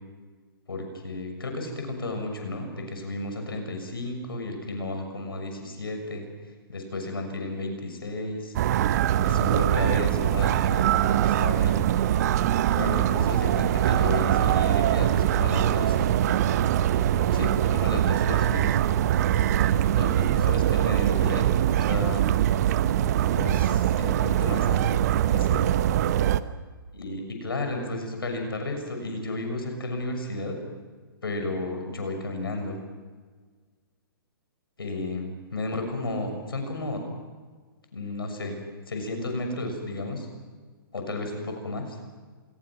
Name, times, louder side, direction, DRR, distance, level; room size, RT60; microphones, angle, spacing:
voice 1, 0.7-6.3 6.7-8.5 9.2-12.0 12.7-16.1 17.1-18.8 19.6-21.5 21.9-22.3 23.3-25.7 26.9-30.6 31.2-32.8 34.8-37.0 37.9-38.6 38.9-40.3 40.9-42.0, left 2 dB, 75° left, 4 dB, 6.5 m, -33 dB
sound 1, 8.5-26.4, right 11 dB, 45° right, 1.0 m, -23 dB
27.5 x 21.0 x 6.2 m, 1.5 s
figure-of-eight pair, 125°, 12 cm